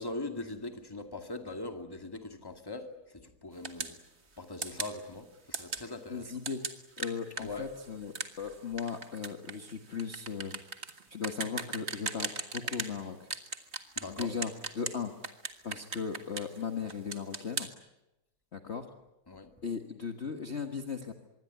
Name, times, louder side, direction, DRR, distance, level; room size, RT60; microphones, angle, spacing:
voice 1, 0.0-2.9 3.4-4.0 4.4-6.3 7.4-7.7 14.0-14.3 19.3-19.5, left 2 dB, 10° left, 5 dB, 2.1 m, -41 dB
sound 1, 3.6-4.0 4.6-5.0 5.5-5.9 6.4-12.9 13.3-15.0 15.2-16.6 16.9-17.7, right 4 dB, 35° right, 1.8 m, -37 dB
voice 2, 6.1-6.6 7.0-10.6 11.1-13.3 14.1-15.1 15.6-17.7 18.5-18.9 19.6-21.1, left 6 dB, 35° left, 5 dB, 1.6 m, -37 dB
25.5 x 22.0 x 9.5 m, 0.96 s
omnidirectional pair, 2.2 m